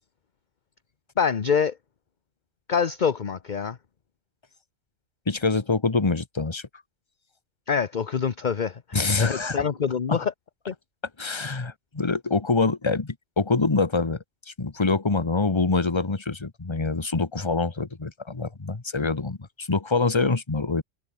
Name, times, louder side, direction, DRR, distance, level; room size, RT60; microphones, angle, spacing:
voice 1, 1.2-1.8 2.7-3.8 7.7-10.3 10.7-10.8, left 6 dB, 40° left, 1.0 m, -25 dB
voice 2, 5.3-6.6 8.9-9.6 10.1-10.2 11.2-20.8, left 3 dB, 20° left, 1.3 m, -25 dB
omnidirectional pair, 1.4 m